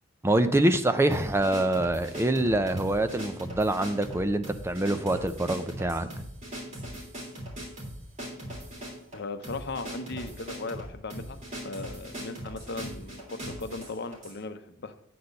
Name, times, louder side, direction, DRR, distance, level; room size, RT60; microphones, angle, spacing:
voice 1, 0.2-6.1, right 1 dB, 15° right, 9 dB, 0.5 m, -25 dB
sound 1, 1.1-14.4, equal, 40° right, 3.3 m, -40 dB
voice 2, 9.1-14.9, left 3 dB, 60° left, 9 dB, 0.8 m, -38 dB
9.3 x 4.3 x 6.6 m, 0.69 s
head